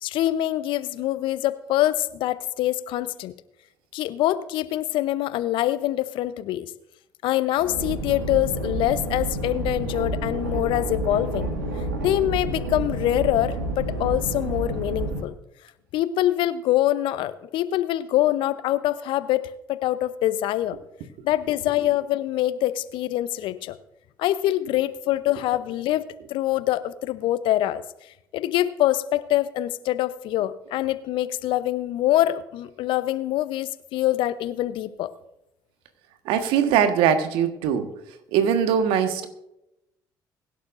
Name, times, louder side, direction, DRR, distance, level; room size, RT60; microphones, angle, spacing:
voice 1, 0.0-3.3 3.9-6.7 7.2-11.5 12.0-15.3 15.9-20.8 21.2-23.8 24.2-27.8 28.3-35.1, left 14 dB, 60° left, 15 dB, 0.7 m, -24 dB
sound 1, 7.6-15.2, right 1 dB, 90° right, 1.6 m, -29 dB
voice 2, 36.3-37.9 38.3-39.3, right 8 dB, 65° right, 8 dB, 1.4 m, -21 dB
22.5 x 11.5 x 2.6 m, 0.88 s
hypercardioid pair, 55°, 9 cm